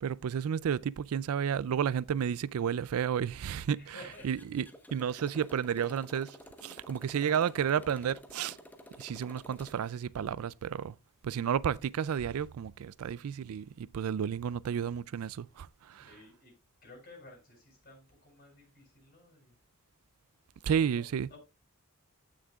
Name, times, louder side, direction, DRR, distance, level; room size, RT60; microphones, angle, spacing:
voice 1, 0.0-3.9 4.2-4.6 4.9-6.4 6.6-8.6 9.0-10.9 11.2-16.0 20.6-21.3, right 8 dB, 70° right, 0.4 m, -32 dB
voice 2, 3.7-4.3 16.0-16.5 16.8-19.6 20.9-21.4, left 2 dB, 40° left, 6.8 m, -53 dB
Motorcycle, 4.0-9.9, left 1 dB, 10° left, 1.1 m, -52 dB
15.5 x 6.4 x 2.4 m
head